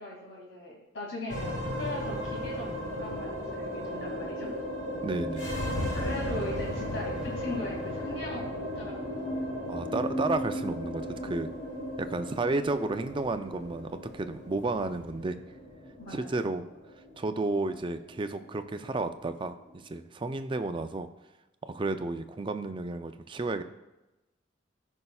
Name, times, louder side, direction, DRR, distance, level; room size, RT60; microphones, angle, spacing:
voice 1, 0.0-4.5 5.9-9.6 16.0-16.4, left 1 dB, 75° left, -3 dB, 2.5 m, -39 dB
sound 1, 1.3-19.8, left 1 dB, 45° left, 3.1 m, -36 dB
voice 2, 5.0-5.5 9.7-11.5 12.0-15.4 16.1-16.6 17.2-21.1 21.7-23.6, right 2 dB, 25° right, 9 dB, 0.4 m, -32 dB
15.0 x 5.4 x 2.3 m, 1.0 s
head